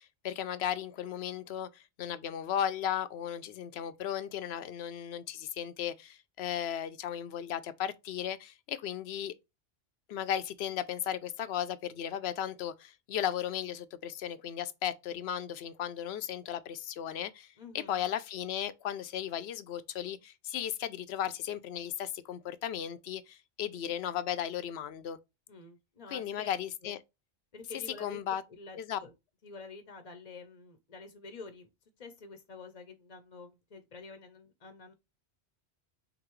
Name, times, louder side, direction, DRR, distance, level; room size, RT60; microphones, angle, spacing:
voice 1, 0.0-9.3 10.1-25.2 26.1-27.0 28.0-28.4 28.8-29.0, left 10 dB, 75° left, 0.8 m, -36 dB
voice 2, 17.6-18.0 25.5-26.5 26.8-26.9 27.5-28.2 28.5-29.1 29.4-31.7 32.0-34.9, left 4 dB, 40° left, 0.7 m, -48 dB
6.0 x 2.7 x 3.0 m
omnidirectional pair, 1.1 m